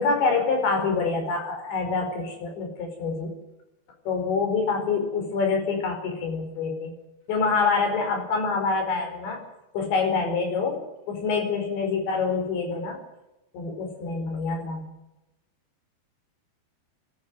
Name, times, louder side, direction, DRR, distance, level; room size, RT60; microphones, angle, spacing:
voice 1, 0.0-3.3 4.1-6.9 7.3-9.4 9.7-10.8 11.1-13.0 13.5-14.8, left 4 dB, 80° left, 4 dB, 7.1 m, -26 dB
25.5 x 12.0 x 9.5 m, 0.94 s
omnidirectional pair, 5.1 m